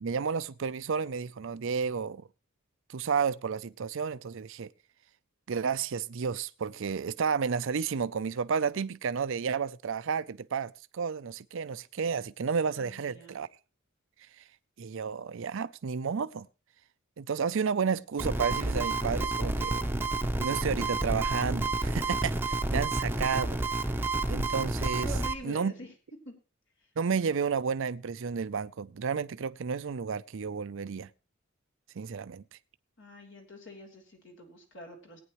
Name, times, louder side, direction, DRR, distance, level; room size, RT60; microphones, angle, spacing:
voice 1, 0.0-2.2 2.9-4.7 5.5-13.5 14.4-14.5 14.8-16.5 17.2-19.8 20.4-23.6 24.3-25.1 25.4-25.7 27.0-31.1 32.0-32.4, right 6 dB, 65° right, 0.5 m, -31 dB
voice 2, 12.8-13.4 25.0-25.9 26.2-26.3 33.0-35.2, equal, 65° left, 3.4 m, -45 dB
sound 1, 18.2-25.3, right 2 dB, 10° right, 0.8 m, -30 dB
18.0 x 9.4 x 3.1 m
head